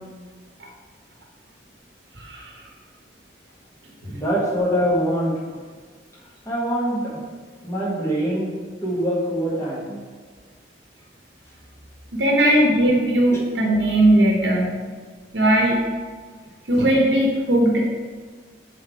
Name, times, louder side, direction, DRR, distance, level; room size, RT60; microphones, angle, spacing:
voice 1, 2.2-2.6 4.0-4.2 12.1-14.8 15.3-15.8 16.7-17.8, right 1 dB, 80° right, -1 dB, 1.2 m, -18 dB
voice 2, 4.1-5.3 6.5-7.2 7.6-8.5 8.8-10.0, equal, 15° left, -6 dB, 1.8 m, -23 dB
6.2 x 3.8 x 4.8 m, 1.5 s
head